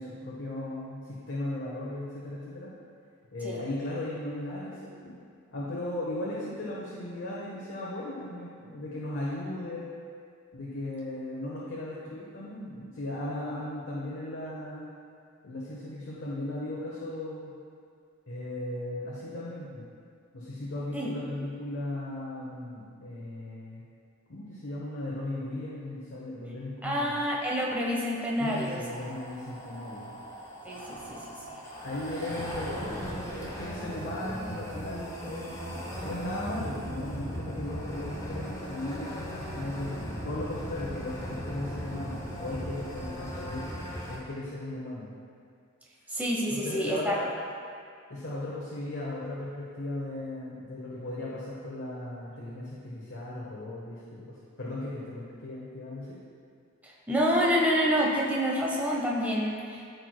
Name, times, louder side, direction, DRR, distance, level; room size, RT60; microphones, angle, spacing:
voice 1, 0.0-2.7 3.3-5.1 5.5-9.9 10.5-14.9 15.4-17.5 18.3-19.8 20.3-23.8 24.3-27.2 28.4-30.1 31.8-43.6 44.1-45.1 46.5-47.2 48.1-56.2, left 1 dB, 60° left, -6 dB, 1.1 m, -37 dB
voice 2, 26.8-28.8 30.6-31.3 46.1-47.2 57.1-59.9, equal, 10° right, -3 dB, 0.9 m, -27 dB
sound 1, 28.4-44.2, equal, 15° left, 1.2 m, -38 dB
13.5 x 4.8 x 2.2 m, 2.2 s
head